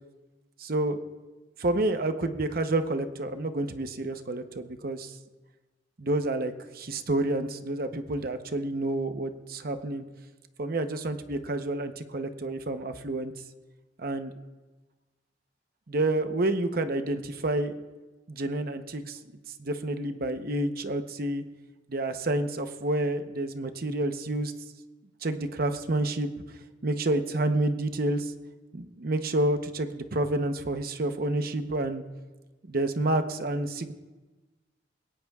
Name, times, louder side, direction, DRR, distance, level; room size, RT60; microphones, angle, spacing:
voice 1, 0.6-1.0 1.6-5.1 6.0-10.0 10.6-13.3 14.0-14.3 15.9-17.7 18.3-19.2 19.6-21.4 21.9-24.5 25.2-26.3 26.8-28.3 28.7-32.0 32.7-33.9, right 2 dB, 55° right, 8 dB, 0.9 m, -29 dB
22.0 x 17.5 x 2.4 m, 1.2 s
head